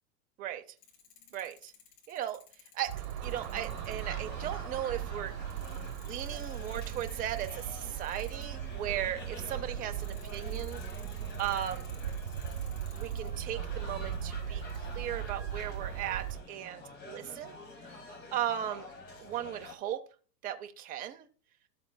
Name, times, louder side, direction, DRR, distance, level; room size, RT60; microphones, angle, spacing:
sound 1, 0.8-4.2 5.0-5.1 5.5-8.5 9.9-13.3 13.8-14.3 14.7-14.8 15.3-16.2, left 7 dB, 70° left, 3.7 m, -57 dB
voice 1, 1.3-1.7 2.1-2.4 2.7-2.9 3.2-5.4 6.0-10.8 11.4-11.9 12.9-17.6 18.3-18.9 19.2-20.0 20.4-21.3, right 11 dB, 20° right, 6 dB, 0.6 m, -37 dB
sound 2, 2.9-16.4, right 9 dB, 65° right, 1.1 m, -38 dB
sound 3, 3.2-19.8, left 2 dB, 20° left, 1.8 m, -48 dB
12.5 x 7.5 x 2.2 m, 0.39 s
hypercardioid pair, 125°, 48 cm